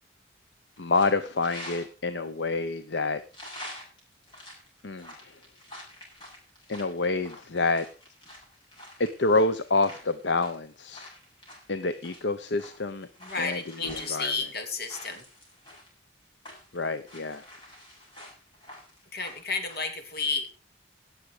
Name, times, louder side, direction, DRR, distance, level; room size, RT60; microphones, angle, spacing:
sound 1, 0.7-1.9 2.4-2.5 3.0-15.9 16.3-19.8, left 1 dB, 25° left, 6.9 m, -47 dB
voice 1, 0.8-3.2 4.8-5.4 6.7-7.8 9.0-11.1 11.7-13.1 13.4-14.3 16.7-17.4, left 3 dB, 70° left, 11 dB, 0.8 m, -27 dB
voice 2, 13.2-15.2 19.1-20.6, left 4 dB, 55° left, 6 dB, 2.9 m, -32 dB
18.0 x 7.5 x 5.0 m, 0.35 s
head